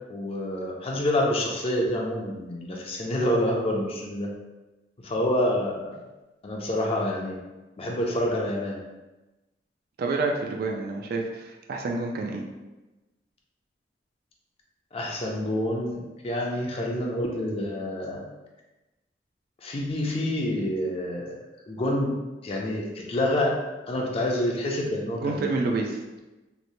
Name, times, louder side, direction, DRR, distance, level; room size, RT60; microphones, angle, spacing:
voice 1, 0.1-4.3 5.0-6.0 6.4-7.4 7.8-8.8 14.9-18.2 19.6-21.4 21.7-22.1 22.4-23.6 23.9-25.5, left 1 dB, 35° left, -1 dB, 0.4 m, -27 dB
voice 2, 10.0-12.5 25.2-26.2, right 3 dB, 55° right, 1 dB, 0.3 m, -28 dB
3.0 x 2.0 x 2.6 m, 1.1 s
head